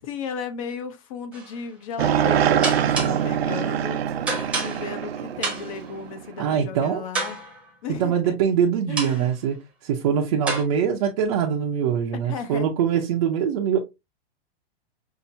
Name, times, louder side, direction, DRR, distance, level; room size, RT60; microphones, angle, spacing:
voice 1, 0.0-4.0 4.3-7.4 7.8-8.3 8.9-9.3 12.1-12.7, left 6 dB, 35° left, 0.7 m, -35 dB
sound 1, 1.3-1.6 2.6-3.4 4.3-5.1 5.4-5.9 7.1-7.7 9.0-9.3 10.5-10.6, right 3 dB, 5° right, 0.9 m, -29 dB
sound 2, 2.0-6.3, right 9 dB, 90° right, 0.7 m, -24 dB
voice 2, 6.4-7.0 7.9-9.6 9.8-13.8, right 8 dB, 40° right, 0.6 m, -23 dB
5.6 x 2.6 x 2.6 m
supercardioid pair, 170°, 30 cm